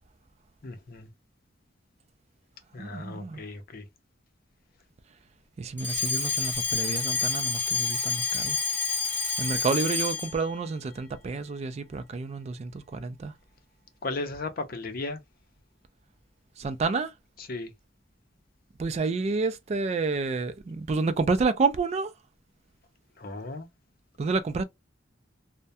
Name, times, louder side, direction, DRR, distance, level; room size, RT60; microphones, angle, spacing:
voice 1, 0.6-1.1 2.7-3.9 14.0-15.2 17.4-17.7 23.2-23.7, left 3 dB, 50° left, 0.6 m, -36 dB
voice 2, 2.8-3.4 5.6-8.6 9.4-13.3 16.6-17.1 18.8-22.1 24.2-24.6, right 4 dB, 35° right, 0.3 m, -29 dB
Alarm, 5.8-10.4, left 4 dB, 10° left, 0.6 m, -28 dB
2.2 x 2.1 x 2.6 m
head